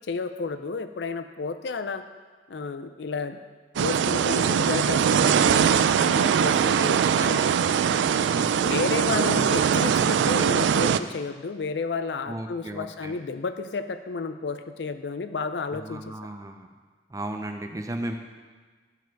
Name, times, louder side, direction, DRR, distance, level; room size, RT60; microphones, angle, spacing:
voice 1, 0.1-2.0 2.5-3.4 3.8-7.5 8.6-16.0, left 4 dB, 75° left, 10 dB, 0.5 m, -31 dB
sound 1, 3.8-11.0, right 7 dB, 85° right, 0.3 m, -22 dB
voice 2, 8.3-8.6 12.3-13.2 15.7-16.7 17.1-18.2, right 1 dB, 20° right, 5 dB, 0.5 m, -35 dB
11.5 x 4.9 x 4.6 m, 1.5 s
head